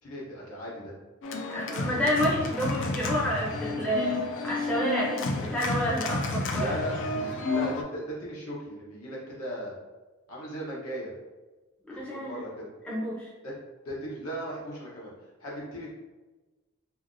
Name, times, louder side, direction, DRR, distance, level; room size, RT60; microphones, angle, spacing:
voice 1, 0.0-0.9 2.0-2.3 4.6-4.7 6.5-7.0 7.5-9.7 10.3-11.1 11.9-12.7 13.4-13.5 13.8-15.9, equal, 75° left, -5 dB, 1.0 m, -37 dB
Organ, 1.2-7.8, left 3 dB, 55° left, 0.3 m, -31 dB
voice 2, 1.5-6.8 11.9-12.4 12.8-13.3, equal, 5° left, -6 dB, 0.5 m, -29 dB
2.9 x 2.7 x 2.6 m, 1.2 s
head